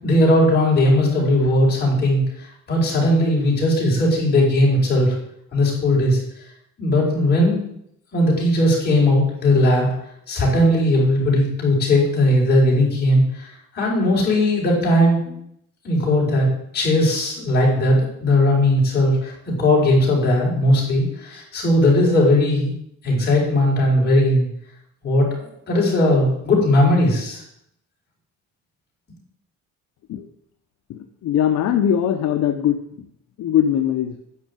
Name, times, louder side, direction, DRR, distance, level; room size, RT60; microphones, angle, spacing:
voice 1, 0.0-2.2 2.7-5.2 5.5-6.2 6.8-7.6 8.1-9.9 10.3-13.5 13.7-15.3 15.8-16.5 16.7-22.7 23.0-24.5 25.0-27.4, left 1 dB, 30° left, -4 dB, 5.7 m, -18 dB
voice 2, 30.9-32.8 33.4-34.2, left 9 dB, 60° left, 5 dB, 1.0 m, -20 dB
10.5 x 6.5 x 9.1 m, 0.71 s
cardioid pair, 165°, 31 cm